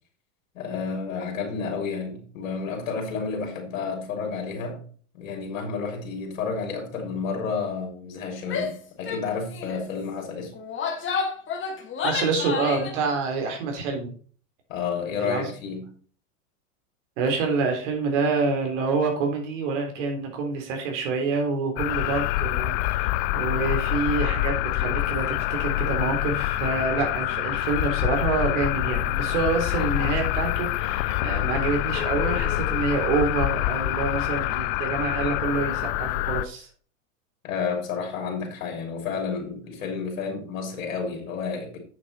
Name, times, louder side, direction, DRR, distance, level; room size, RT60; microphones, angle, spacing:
voice 1, 0.5-4.8 5.1-10.5 14.7-15.9 37.4-41.8, left 5 dB, 75° left, 3.4 m, -31 dB
Female speech woman speaking / Yell, 8.4-8.8 9.1-9.2 9.5-9.8 10.5-12.9, left 5 dB, 30° left, 2.2 m, -30 dB
voice 2, 12.0-14.1 15.2-15.5 17.2-36.7, right 4 dB, 65° right, 3.5 m, -27 dB
sound 1, 21.8-36.4, left 16 dB, 50° left, 0.6 m, -26 dB
8.1 x 7.0 x 4.3 m
hypercardioid pair, 105°, 39 cm